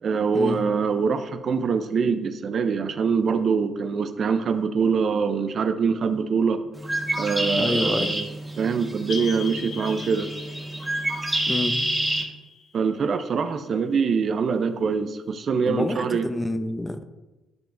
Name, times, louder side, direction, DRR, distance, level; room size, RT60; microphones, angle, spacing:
voice 1, 0.0-6.7 7.2-8.3 8.6-10.3 12.7-16.3, right 5 dB, 55° right, 10 dB, 0.5 m, -24 dB
Bird, 6.7-12.2, right 1 dB, 5° right, 1.5 m, -28 dB
voice 2, 7.6-8.2 11.5-11.8 15.7-17.1, left 1 dB, 15° left, 9 dB, 0.6 m, -27 dB
sound 1, 9.1-13.5, left 6 dB, 80° left, 1.4 m, -41 dB
12.0 x 4.7 x 2.6 m, 1.1 s
cardioid pair, 90°, 0 cm